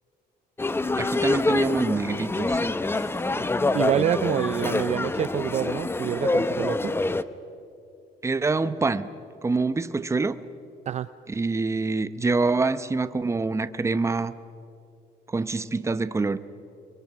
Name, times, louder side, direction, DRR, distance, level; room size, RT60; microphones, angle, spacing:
sound 1, 0.6-7.2, left 2 dB, 15° left, 0.8 m, -26 dB
voice 1, 1.0-2.7 2.9-3.0 3.4-3.5 8.2-9.1 9.4-10.3 11.3-14.3 15.3-16.4, right 3 dB, 15° right, 13 dB, 0.9 m, -25 dB
voice 2, 3.7-6.9 10.9-11.1, right 10 dB, 40° right, 14 dB, 0.5 m, -27 dB
29.5 x 23.0 x 6.1 m, 2.7 s
cardioid pair, 110°, 17 cm